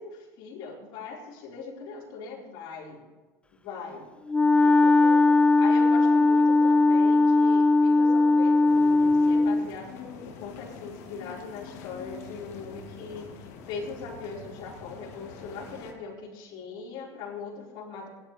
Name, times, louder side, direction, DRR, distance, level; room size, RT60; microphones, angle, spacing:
voice 1, 0.0-3.0 3.5-4.1 4.6-5.3 5.6-18.1, left 5 dB, 70° left, -3 dB, 4.8 m, -40 dB
Wind instrument woodwind instrument, 4.3-9.7, left 3 dB, 15° left, 0.4 m, -19 dB
sound 1, 8.6-15.9, left 5 dB, 85° left, 1.9 m, -45 dB
17.5 x 11.5 x 3.4 m, 1.3 s
supercardioid pair, 100°, 8 cm